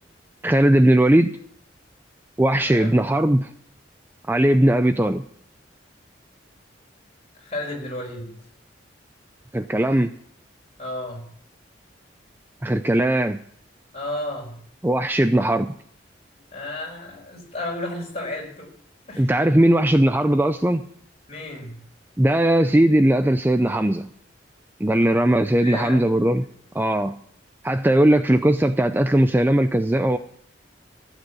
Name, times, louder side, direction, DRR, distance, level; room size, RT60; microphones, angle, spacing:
voice 1, 0.4-1.3 2.4-3.5 4.3-5.2 9.5-10.1 12.6-13.4 14.8-15.7 19.2-20.8 22.2-24.1 24.8-26.4 26.7-27.2 27.6-30.2, right 1 dB, 10° right, 9 dB, 0.5 m, -19 dB
voice 2, 2.5-2.9 7.3-8.3 10.8-11.3 13.9-14.6 16.5-18.7 19.0-19.3 21.3-21.8 25.6-26.2, left 1 dB, 35° left, 0 dB, 5.0 m, -32 dB
15.5 x 8.1 x 8.3 m, 0.64 s
head